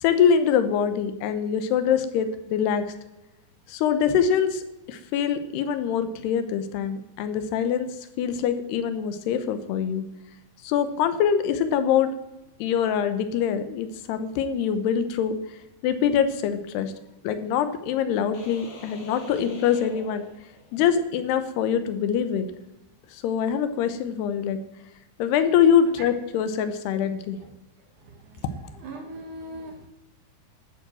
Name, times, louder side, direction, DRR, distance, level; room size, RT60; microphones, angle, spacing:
voice 1, 0.0-2.9 3.7-10.1 10.6-12.1 12.6-15.4 15.8-16.9 17.2-20.3 20.7-22.5 23.1-24.6 25.2-27.4, left 8 dB, 80° left, 11 dB, 3.0 m, -24 dB
sound 1, 18.3-21.0, left 2 dB, 50° left, 3.9 m, -44 dB
voice 2, 28.8-29.9, right 1 dB, 65° right, 3 dB, 2.2 m, -39 dB
12.5 x 8.7 x 7.6 m, 0.97 s
omnidirectional pair, 4.8 m